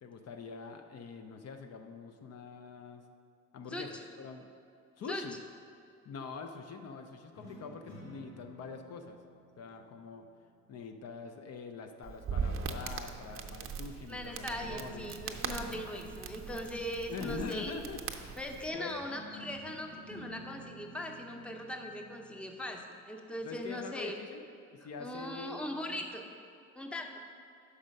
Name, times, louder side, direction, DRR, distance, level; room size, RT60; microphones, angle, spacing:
voice 1, 0.0-3.0 3.5-4.5 5.0-5.4 6.1-9.2 9.6-10.3 10.7-15.1 17.1-18.4 18.7-19.0 23.4-24.4 24.7-26.0, left 5 dB, 55° left, 6 dB, 0.6 m, -44 dB
voice 2, 3.7-4.0 5.1-5.2 14.1-17.7 18.4-24.2 25.0-26.2 26.7-27.1, left 1 dB, 5° left, 3 dB, 0.6 m, -40 dB
sound 1, 7.3-10.7 14.6-18.0 18.9-22.7, equal, 90° left, 1.7 m, -52 dB
Crackle, 12.0-18.7, right 6 dB, 45° right, 0.6 m, -40 dB
5.5 x 4.9 x 6.3 m, 2.4 s
cardioid pair, 90°, 30 cm